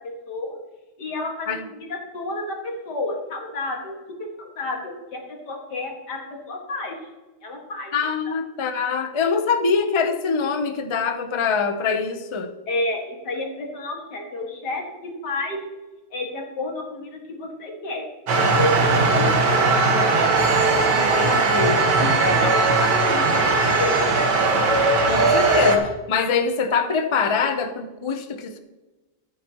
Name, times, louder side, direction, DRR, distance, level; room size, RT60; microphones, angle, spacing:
voice 1, 0.3-0.6 1.0-3.9 4.2-7.0 7.4-7.9 12.7-15.6 16.1-18.1 18.6-19.9 22.0-24.3, left 2 dB, 75° left, 0 dB, 2.5 m, -30 dB
voice 2, 7.9-12.5 20.9-21.8 25.0-28.6, left 5 dB, 45° left, 7 dB, 0.4 m, -24 dB
sound 1, 18.3-25.8, right 3 dB, 90° right, 1.9 m, -19 dB
14.0 x 9.2 x 3.0 m, 1.2 s
omnidirectional pair, 1.8 m